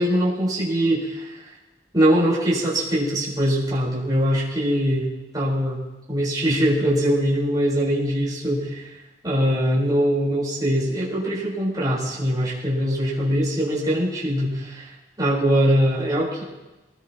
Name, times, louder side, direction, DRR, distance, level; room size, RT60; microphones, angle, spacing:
voice 1, 0.0-1.4 1.9-5.1 5.3-5.8 6.1-8.8 9.2-14.9 15.2-16.4, equal, 20° right, -7 dB, 4.7 m, -22 dB
23.5 x 19.5 x 3.1 m, 1.1 s
head